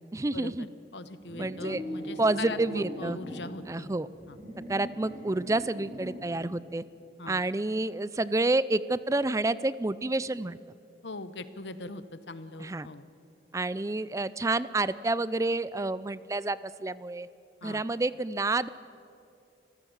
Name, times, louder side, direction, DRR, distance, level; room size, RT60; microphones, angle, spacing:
voice 1, 0.1-0.7 1.4-1.8 2.2-3.2 3.7-4.1 4.7-6.8 7.3-10.6 12.6-12.9 13.5-17.3 17.6-18.7, right 2 dB, 20° right, 17 dB, 0.4 m, -29 dB
voice 2, 0.9-3.9 4.3-4.4 7.2-7.4 11.0-13.1 17.6-17.8, left 2 dB, 85° left, 13 dB, 1.1 m, -41 dB
sound 1, 1.2-3.5 4.1-6.3, equal, 45° right, 5.5 m, -41 dB
26.5 x 16.0 x 7.2 m, 2.6 s
head